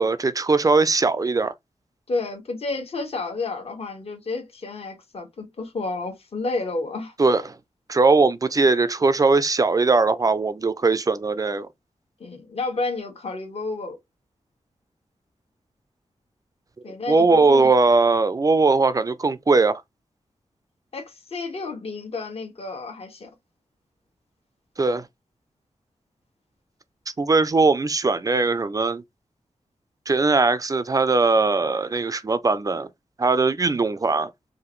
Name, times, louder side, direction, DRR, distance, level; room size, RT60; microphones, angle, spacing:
voice 1, 0.0-1.5 7.2-7.6 7.9-11.7 17.1-19.8 24.8-25.0 27.2-29.0 30.1-32.9 33.2-34.3, right 3 dB, 30° right, 0.4 m, -20 dB
voice 2, 2.1-7.1 12.2-14.0 16.8-17.7 20.9-23.3, left 3 dB, 55° left, 1.4 m, -31 dB
4.9 x 2.5 x 3.0 m
wide cardioid pair, 140°, 12 cm